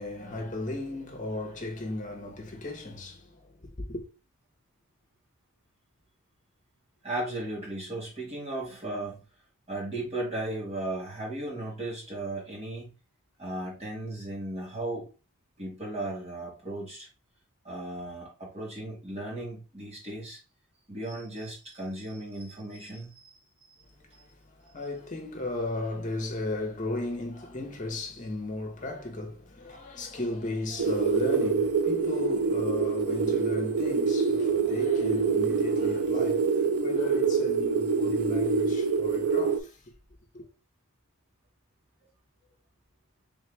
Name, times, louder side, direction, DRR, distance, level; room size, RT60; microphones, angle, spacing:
voice 1, 0.0-4.0 23.9-39.9 40.3-40.4, left 2 dB, 35° left, 1.1 m, -36 dB
voice 2, 7.0-9.2 9.7-12.9 13.4-15.1 15.6-17.1 17.6-20.4 20.9-23.3 23.6-23.7, right 1 dB, 25° right, 1.8 m, -36 dB
sound 1, 30.8-39.6, right 5 dB, 85° right, 0.5 m, -26 dB
3.7 x 3.2 x 3.4 m
head